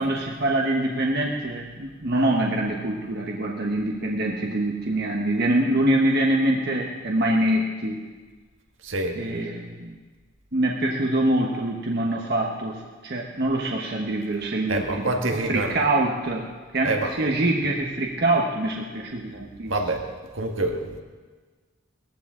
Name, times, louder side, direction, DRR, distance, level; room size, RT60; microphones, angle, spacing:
voice 1, 0.0-8.0 9.1-10.0 10.5-19.8, right 1 dB, 50° right, -1 dB, 1.1 m, -25 dB
voice 2, 8.8-9.2 14.7-15.7 16.9-17.1 19.7-20.0 20.3-21.0, right 2 dB, 70° right, 2 dB, 1.6 m, -26 dB
19.0 x 14.5 x 3.8 m, 1.4 s
head